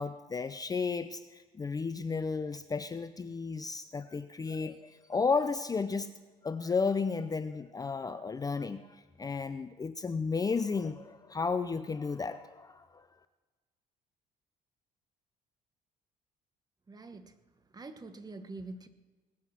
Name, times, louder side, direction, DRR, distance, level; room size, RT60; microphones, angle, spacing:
voice 1, 0.0-6.1 6.4-13.1, left 4 dB, 20° left, 11 dB, 0.6 m, -33 dB
voice 2, 16.9-17.3 17.7-18.9, right 3 dB, 25° right, 9 dB, 1.3 m, -45 dB
20.0 x 8.6 x 6.0 m, 1.3 s
cardioid pair, 110°, 17 cm